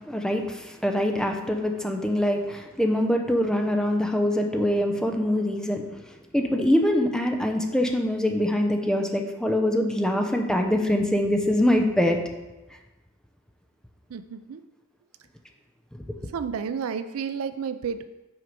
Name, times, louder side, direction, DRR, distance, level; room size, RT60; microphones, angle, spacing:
voice 1, 0.0-6.0 6.3-12.2, left 1 dB, 5° left, 3 dB, 0.6 m, -24 dB
voice 2, 14.1-14.6 16.2-18.0, right 6 dB, 70° right, 11 dB, 0.4 m, -31 dB
6.2 x 4.6 x 5.1 m, 1.1 s
head